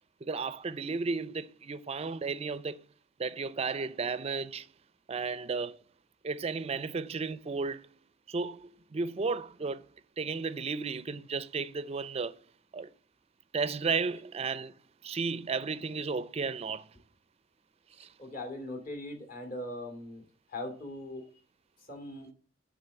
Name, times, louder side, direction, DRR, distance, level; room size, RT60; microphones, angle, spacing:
voice 1, 0.2-2.8 3.2-4.7 5.1-5.8 6.2-7.9 8.3-9.8 10.2-12.4 12.7-12.9 13.5-14.8 15.0-17.0 18.0-18.1, right 4 dB, 30° right, 0.4 m, -34 dB
voice 2, 18.0-20.2 20.5-21.2 21.9-22.3, left 1 dB, 45° left, 2.4 m, -40 dB
8.6 x 3.8 x 6.9 m
head